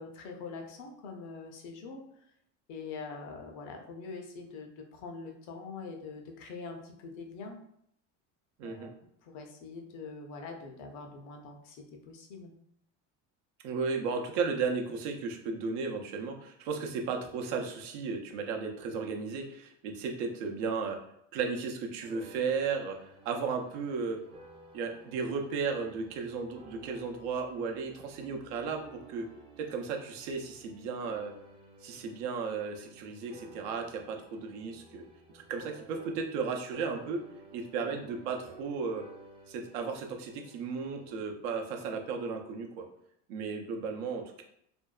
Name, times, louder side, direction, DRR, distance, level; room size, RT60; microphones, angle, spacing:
voice 1, 0.0-2.0 2.7-7.6 8.6-8.9 9.2-11.8 12.1-12.6, left 4 dB, 75° left, 2 dB, 0.7 m, -44 dB
voice 2, 8.6-8.9 13.6-21.0 21.3-24.2 24.7-28.8 29.1-29.3 29.6-31.3 31.8-35.0 35.3-37.2 37.5-39.1 39.5-42.9 43.3-44.4, right 5 dB, 80° right, 3 dB, 0.6 m, -34 dB
sound 1, 22.0-36.5 36.7-41.2, right 3 dB, 15° right, 0.4 m, -54 dB
2.6 x 2.2 x 2.3 m, 0.71 s
supercardioid pair, 105°, 34 cm